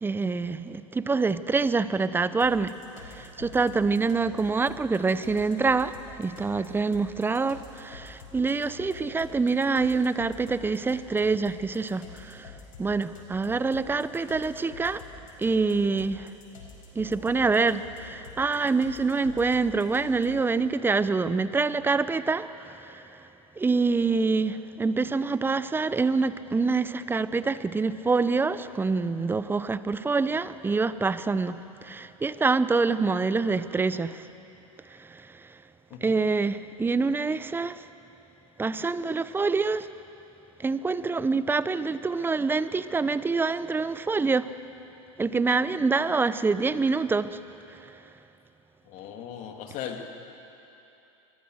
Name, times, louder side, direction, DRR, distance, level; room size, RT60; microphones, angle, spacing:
voice 1, 0.0-2.8 3.0-12.5 12.8-15.0 15.4-16.3 16.9-23.0 23.6-34.3 35.0-35.3 36.0-37.8 38.6-39.9 40.6-44.5 45.2-47.4, right 4 dB, 10° right, 14 dB, 0.8 m, -26 dB
sound 1, 2.4-20.5, left 4 dB, 85° left, 4.9 m, -48 dB
voice 2, 48.9-50.1, left 9 dB, 50° left, 4 dB, 2.8 m, -38 dB
26.0 x 22.0 x 6.5 m, 2.9 s
hypercardioid pair, 100°, 17 cm